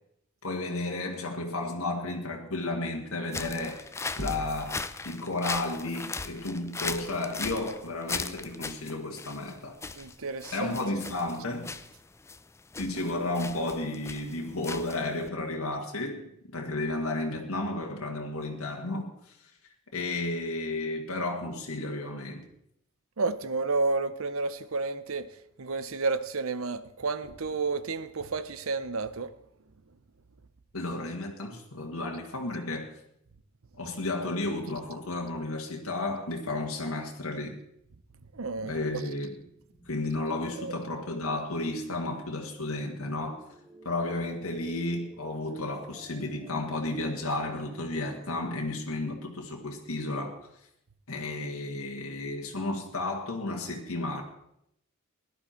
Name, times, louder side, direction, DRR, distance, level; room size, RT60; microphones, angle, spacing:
voice 1, 0.4-3.9 4.2-9.8 10.5-11.7 12.8-19.4 19.9-22.5 30.7-32.9 33.8-37.6 38.6-39.4 39.9-43.4 43.8-50.5 51.1-54.2, left 2 dB, 75° left, 1.7 m, -33 dB
sound 1, 3.3-15.3, left 4 dB, 15° left, 0.4 m, -38 dB
sound 2, 4.2-5.2, equal, 40° right, 1.7 m, -38 dB
voice 2, 10.0-10.7 23.2-25.3 25.6-29.3 38.3-38.7 40.6-40.8, right 3 dB, 70° right, 0.8 m, -31 dB
sound 3, 39.3-48.6, right 1 dB, 10° right, 4.0 m, -55 dB
17.0 x 11.0 x 4.4 m
head